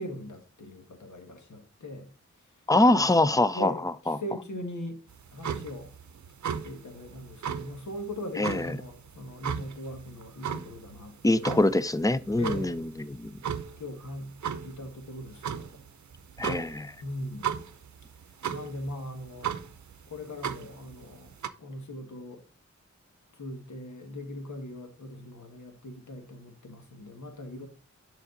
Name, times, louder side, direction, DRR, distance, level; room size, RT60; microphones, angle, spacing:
voice 1, 0.0-2.1 2.4-2.5 2.9-3.1 3.5-5.0 5.3-5.9 6.5-11.5 12.4-12.9 13.8-14.3 14.6-15.8 17.0-17.6 18.5-19.6 20.1-22.4 23.3-27.7, left 1 dB, 75° left, 1.7 m, -40 dB
voice 2, 2.7-3.7 4.1-4.2 8.4-8.7 11.2-13.4 16.4-16.9, left 2 dB, 10° left, 0.5 m, -24 dB
sound 1, 5.1-21.5, right 8 dB, 75° right, 0.7 m, -37 dB
7.0 x 5.9 x 3.9 m
cardioid pair, 60°, 29 cm